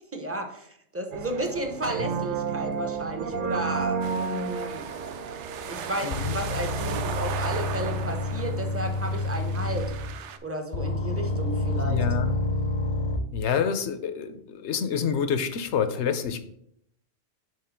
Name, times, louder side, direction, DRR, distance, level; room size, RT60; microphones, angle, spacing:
voice 1, 0.1-4.9 5.7-9.9 10.4-12.0, right 1 dB, 15° right, 4 dB, 0.8 m, -33 dB
sound 1, 1.1-7.0, right 5 dB, 60° right, 0.6 m, -32 dB
sound 2, 4.0-10.4, right 7 dB, 85° right, 0.9 m, -37 dB
sound 3, 5.6-5.7 6.1-10.2 10.7-13.2, left 2 dB, 50° left, 0.7 m, -28 dB
voice 2, 6.0-6.4 11.8-12.3 13.3-16.4, left 7 dB, 75° left, 10 dB, 1.0 m, -27 dB
6.7 x 3.6 x 5.7 m, 0.72 s
omnidirectional pair, 1.2 m